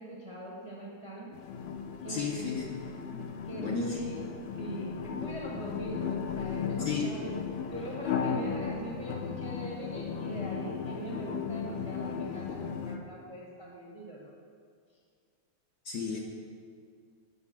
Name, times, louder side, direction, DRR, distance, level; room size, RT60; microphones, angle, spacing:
voice 1, 0.0-1.3 2.0-2.7 3.5-4.2 4.5-14.3, right 1 dB, 25° right, -4 dB, 0.8 m, -41 dB
sound 1, 1.3-13.0, left 6 dB, 80° left, 1.4 m, -36 dB
voice 2, 2.1-2.8 3.1-4.0 6.8-7.1 15.8-16.2, left 5 dB, 60° left, -2 dB, 1.1 m, -34 dB
8.7 x 4.5 x 6.0 m, 2.1 s
omnidirectional pair, 2.2 m